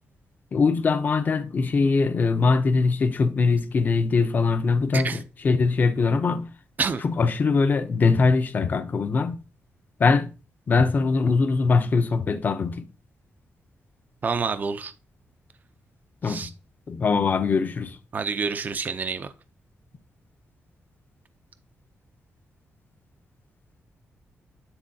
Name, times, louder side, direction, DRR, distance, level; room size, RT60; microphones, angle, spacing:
voice 1, 0.5-6.5 7.0-9.4 10.0-10.3 10.7-12.9 16.2-16.5 16.9-18.0, left 4 dB, 35° left, 0.6 m, -22 dB
voice 2, 14.2-14.9 16.2-16.5 18.1-19.3, right 5 dB, 35° right, 0.4 m, -28 dB
9.8 x 3.8 x 2.7 m
wide cardioid pair, 160°, 5 cm